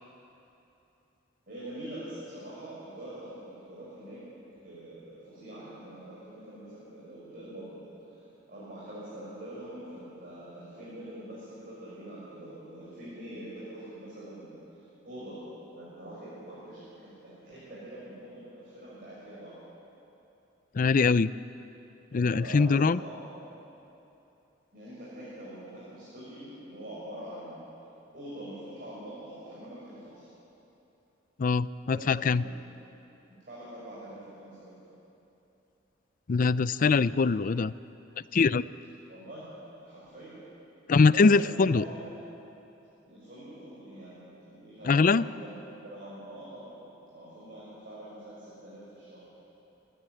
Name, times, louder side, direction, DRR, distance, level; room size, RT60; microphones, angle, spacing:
voice 1, 1.5-4.2 4.6-14.6 15.0-15.4 15.7-19.6 22.1-23.5 24.7-27.6 28.1-30.3 31.8-32.6 33.4-34.8 39.0-40.4 41.1-42.1 43.0-45.6 45.8-46.8 47.1-49.2, right 1 dB, 50° right, -9 dB, 6.8 m, -44 dB
voice 2, 20.7-21.3 22.1-23.0 31.4-32.4 36.3-37.7 38.3-38.6 40.9-41.8 44.9-45.2, left 4 dB, 45° left, 17 dB, 0.4 m, -22 dB
27.5 x 12.5 x 9.8 m, 3.0 s
head